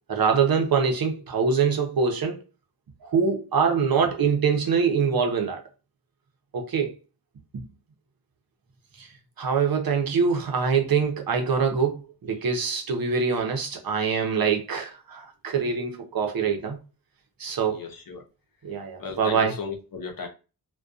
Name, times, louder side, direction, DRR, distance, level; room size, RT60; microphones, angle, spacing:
voice 1, 0.1-2.4 3.0-5.6 6.5-6.9 7.5-7.7 9.0-9.1 9.4-16.8 17.4-17.8 18.6-19.5, right 6 dB, 55° right, 0.6 m, -24 dB
voice 2, 17.5-18.2 19.0-20.3, left 5 dB, 55° left, 0.6 m, -36 dB
2.5 x 2.2 x 2.3 m
wide cardioid pair, 110°, 42 cm